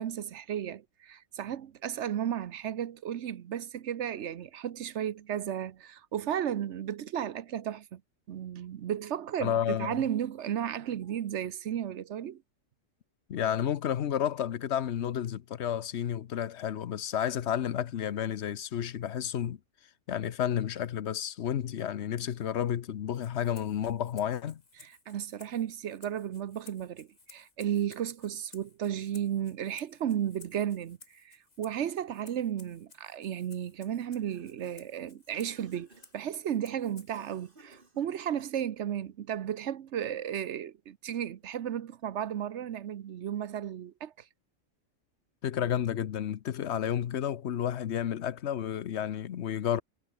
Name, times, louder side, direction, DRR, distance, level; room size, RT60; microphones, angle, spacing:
voice 1, 0.0-8.0 8.3-12.4 24.8-35.9 36.1-44.3, right 9 dB, 65° right, 1.0 m, -34 dB
voice 2, 9.4-10.0 13.3-19.6 20.1-24.6 45.4-49.8, left 9 dB, 60° left, 1.0 m, -31 dB
Rattle (instrument), 23.1-37.3, left 3 dB, 30° left, 1.7 m, -58 dB
Cough, 34.1-34.9 35.5-36.3 37.1-38.8, right 2 dB, 40° right, 3.6 m, -58 dB
omnidirectional pair, 1.4 m